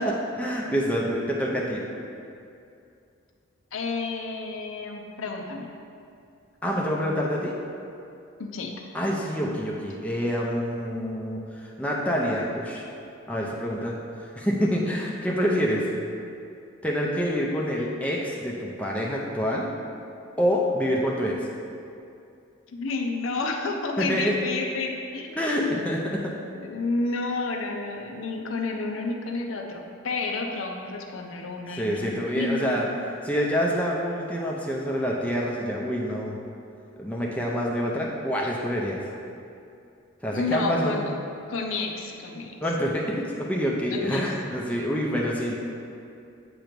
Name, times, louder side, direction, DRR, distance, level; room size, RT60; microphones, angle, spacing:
voice 1, 0.0-1.8 6.6-7.5 8.9-12.8 13.3-15.9 16.8-19.7 20.4-21.4 24.0-24.4 25.4-26.3 31.7-32.9 33.2-36.3 37.0-39.1 40.2-41.0 42.6-45.5, equal, 5° left, -3 dB, 0.5 m, -27 dB
voice 2, 3.7-5.7 8.4-8.7 22.7-26.0 26.6-33.0 40.3-41.2 41.5-42.6 43.9-44.6, left 3 dB, 75° left, 2 dB, 0.6 m, -30 dB
7.8 x 3.0 x 5.1 m, 2.6 s
head